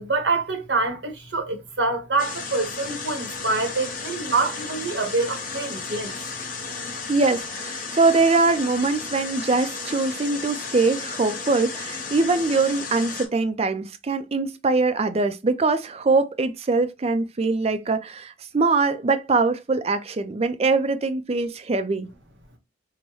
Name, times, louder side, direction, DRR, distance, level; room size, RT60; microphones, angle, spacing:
voice 1, 0.0-6.1, right 3 dB, 75° right, 1.2 m, -26 dB
sound 1, 2.2-13.3, left 4 dB, 45° left, 1.1 m, -34 dB
voice 2, 7.1-22.1, right 3 dB, 35° right, 0.4 m, -22 dB
5.3 x 2.1 x 3.1 m
head